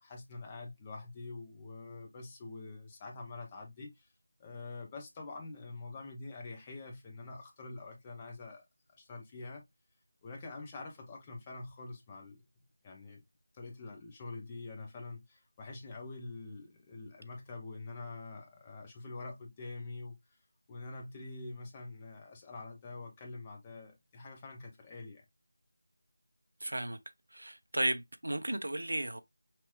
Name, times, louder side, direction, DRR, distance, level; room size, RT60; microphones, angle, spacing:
voice 1, 0.0-4.1 4.4-8.6 9.0-9.6 10.2-12.4 12.8-13.2 13.5-20.2 20.7-25.2, left 3 dB, 15° left, 0.7 m, -45 dB
voice 2, 26.6-27.0 27.3-29.2, right 1 dB, 85° right, 0.7 m, -34 dB
5.8 x 2.4 x 3.0 m
figure-of-eight pair, 170°, 0 cm